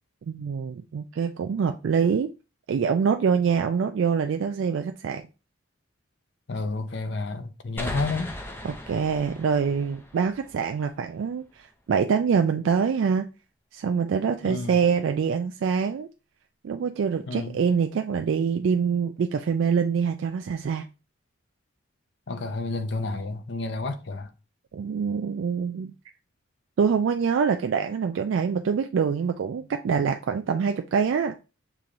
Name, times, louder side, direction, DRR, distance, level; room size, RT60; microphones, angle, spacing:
voice 1, 0.2-2.3 2.7-5.3 8.6-13.3 13.7-16.1 16.6-20.9 24.7-25.9 26.8-31.4, right 6 dB, 70° right, 0.3 m, -25 dB
voice 2, 6.5-8.3 14.4-14.8 17.3-17.6 22.3-24.3, left 3 dB, 55° left, 0.6 m, -30 dB
sound 1, 7.8-11.3, left 1 dB, 10° left, 0.4 m, -38 dB
6.8 x 2.9 x 2.5 m
head